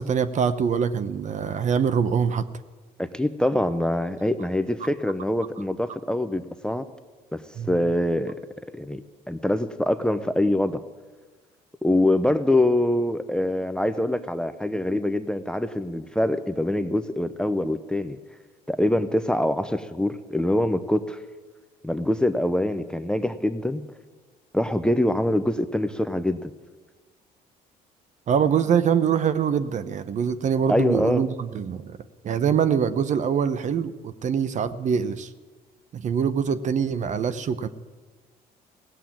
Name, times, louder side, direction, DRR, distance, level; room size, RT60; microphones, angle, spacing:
voice 1, 0.0-2.5 7.6-7.8 28.3-32.0 32.2-35.3 35.9-37.7, right 7 dB, 45° right, 13 dB, 0.8 m, -24 dB
voice 2, 3.0-6.8 7.3-7.4 7.7-8.3 8.7-9.0 9.3-10.8 11.8-18.2 18.7-21.2 21.8-23.8 24.5-26.5 30.7-31.2, left 1 dB, 5° left, 12 dB, 0.6 m, -24 dB
17.5 x 7.7 x 8.6 m, 1.3 s
cardioid pair, 110°, 17 cm